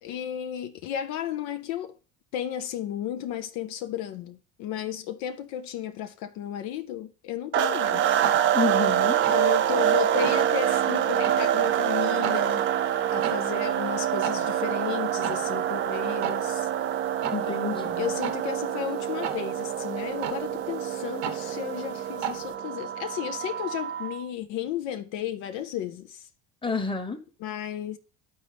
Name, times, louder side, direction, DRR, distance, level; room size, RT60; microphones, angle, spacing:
voice 1, 0.0-1.9 2.3-8.2 9.3-12.7 13.1-16.7 17.5-26.3 27.4-28.0, left 10 dB, 70° left, 0.6 m, -34 dB
sound 1, 7.5-24.2, right 10 dB, 40° right, 0.5 m, -26 dB
sound 2, 7.7-22.5, right 8 dB, 80° right, 1.0 m, -39 dB
voice 2, 8.5-9.2 17.3-18.2 26.6-27.2, left 4 dB, 15° left, 1.1 m, -29 dB
11.5 x 4.1 x 3.4 m
supercardioid pair, 85°, 30 cm